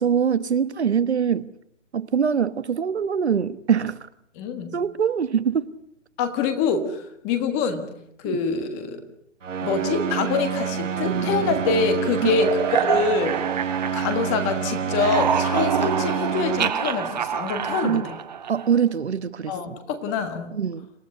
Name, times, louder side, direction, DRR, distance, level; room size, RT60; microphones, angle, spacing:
voice 1, 0.0-1.5 1.9-4.0 4.7-5.7 8.2-8.4 12.2-12.5 17.8-18.1 18.5-19.6 20.5-20.9, right 7 dB, 60° right, 1.2 m, -23 dB
voice 2, 4.4-4.8 6.2-7.9 8.2-9.0 9.6-12.5 12.8-13.4 13.9-18.2 19.5-20.6, left 5 dB, 10° left, 1.4 m, -25 dB
sound 1, 9.4-16.7, right 7 dB, 85° right, 1.2 m, -28 dB
sound 2, 11.0-14.5 14.8-18.8, right 8 dB, 35° right, 1.6 m, -27 dB
27.5 x 15.0 x 9.7 m
hypercardioid pair, 165°, 37 cm